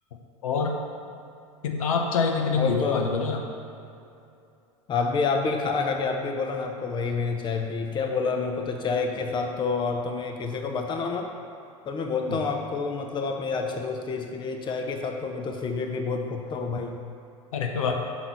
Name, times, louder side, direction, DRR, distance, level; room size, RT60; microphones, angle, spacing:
voice 1, 0.4-0.8 1.6-3.4 12.3-12.4 17.5-17.9, left 5 dB, 70° left, 2 dB, 0.7 m, -25 dB
voice 2, 2.5-3.0 4.9-11.3 11.9-17.0, left 4 dB, 25° left, 4 dB, 0.7 m, -28 dB
6.1 x 3.8 x 5.6 m, 2.7 s
figure-of-eight pair, 80°, 18 cm